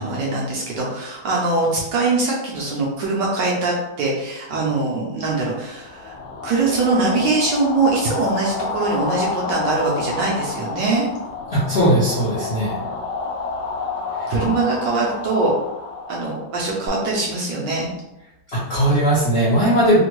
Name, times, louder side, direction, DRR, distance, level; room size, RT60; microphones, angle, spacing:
voice 1, 0.0-6.2 6.4-11.0 14.3-15.5 16.1-17.9, right 3 dB, 70° right, -3 dB, 1.1 m, -22 dB
sound 1, 5.8-16.9, left 4 dB, 80° left, 1.4 m, -30 dB
voice 2, 11.5-12.8 14.2-14.3 18.5-20.0, right 1 dB, 55° left, -10 dB, 0.7 m, -19 dB
3.4 x 2.2 x 3.0 m, 0.90 s
omnidirectional pair, 2.3 m